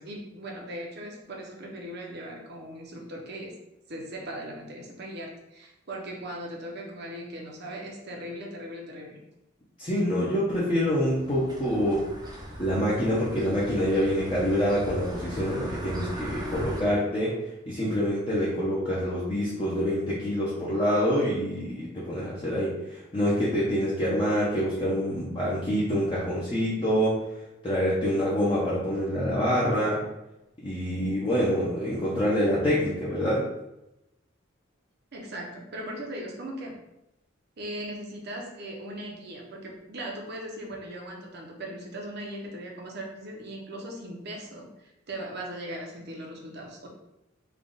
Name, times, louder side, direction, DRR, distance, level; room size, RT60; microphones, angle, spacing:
voice 1, 0.0-3.5 3.9-9.2 35.1-36.8 37.6-46.9, right 1 dB, 55° right, 0 dB, 0.8 m, -39 dB
voice 2, 9.8-12.0 12.6-17.4 17.7-27.2 27.6-30.0 30.6-33.4, equal, 25° left, -9 dB, 0.7 m, -26 dB
sound 1, 10.8-16.8, equal, 20° right, 0.6 m, -38 dB
3.4 x 2.4 x 3.8 m, 0.90 s
head